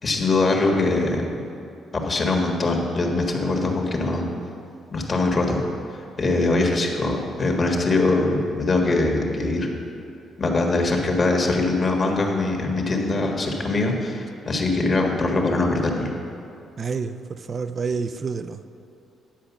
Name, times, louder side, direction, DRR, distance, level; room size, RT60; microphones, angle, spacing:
voice 1, 0.0-1.2 2.0-4.3 4.9-5.6 6.2-9.7 10.4-16.1, left 2 dB, 40° left, 1 dB, 1.6 m, -22 dB
voice 2, 16.8-18.7, right 5 dB, 45° right, 9 dB, 0.4 m, -29 dB
10.0 x 5.0 x 7.1 m, 2.6 s
cardioid pair, 90°, 0 cm